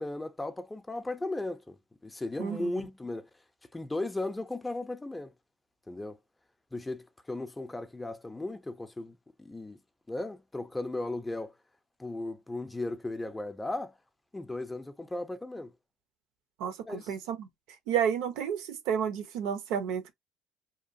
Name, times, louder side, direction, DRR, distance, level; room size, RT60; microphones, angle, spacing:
voice 1, 0.0-1.8 2.0-3.3 3.7-5.3 5.9-6.2 6.7-9.8 10.1-11.5 12.0-13.9 14.3-15.7 16.9-17.1, left 2 dB, 10° left, 0.4 m, -36 dB
voice 2, 2.4-2.7 16.6-17.5 17.9-20.1, right 8 dB, 75° right, 0.6 m, -31 dB
2.8 x 2.2 x 2.6 m
supercardioid pair, 90°, 0 cm